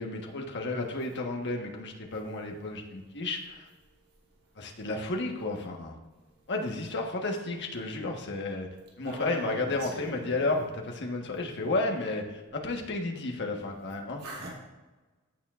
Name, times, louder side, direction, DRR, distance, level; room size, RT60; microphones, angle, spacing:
voice 1, 0.0-3.7 4.6-5.9 6.5-8.7 9.0-14.2, left 2 dB, 55° left, 1 dB, 1.3 m, -32 dB
voice 2, 9.0-10.6 14.2-14.5, right 2 dB, 80° right, -6 dB, 2.9 m, -41 dB
15.5 x 7.0 x 2.5 m, 1.2 s
head